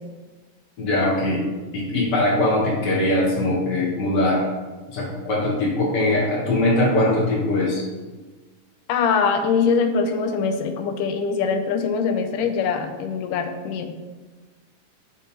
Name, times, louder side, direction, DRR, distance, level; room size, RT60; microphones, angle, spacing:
voice 1, 0.8-1.4 1.7-4.5 4.9-7.8, left 1 dB, 70° left, -3 dB, 1.0 m, -21 dB
voice 2, 8.9-13.9, left 5 dB, 90° left, 6 dB, 2.2 m, -23 dB
8.6 x 3.6 x 4.2 m, 1.3 s
omnidirectional pair, 3.7 m